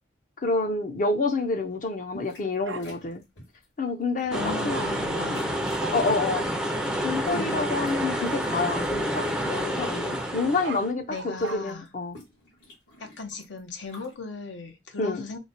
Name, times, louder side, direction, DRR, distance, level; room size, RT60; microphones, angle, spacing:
voice 1, 0.4-3.2 3.8-4.4 4.6-4.8 5.9-6.5 6.9-12.2 15.0-15.2, left 3 dB, 45° left, 0.6 m, -28 dB
sound 1, 2.1-2.5 2.8-3.7 4.2-4.4 5.3-5.9 6.8-9.3 9.7-10.5 10.8-10.9 11.1-14.1, equal, 65° left, 1.5 m, -49 dB
Bark, 2.6-2.8 4.7-4.9 5.8-6.0 6.3-6.5 7.7-7.9 10.4-11.6, right 4 dB, 80° right, 0.6 m, -37 dB
voice 2, 4.2-5.6 7.3-7.9 11.1-11.9 13.0-15.4, left 3 dB, 80° left, 0.7 m, -37 dB
sound 2, 4.3-10.9, equal, 5° right, 0.4 m, -29 dB
3.1 x 2.1 x 3.9 m
head